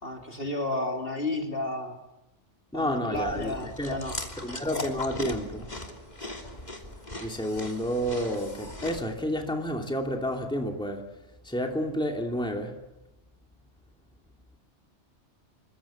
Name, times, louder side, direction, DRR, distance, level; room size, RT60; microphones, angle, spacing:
voice 1, 0.0-2.0 2.7-4.2, left 1 dB, 50° left, 3.7 m, -32 dB
voice 2, 2.7-4.0 4.4-5.7 7.2-11.0 11.4-12.8, equal, 5° left, 2.7 m, -30 dB
Chewing mastication, 3.1-9.0, left 1 dB, 35° left, 3.2 m, -38 dB
27.5 x 24.0 x 7.4 m
omnidirectional pair, 1.2 m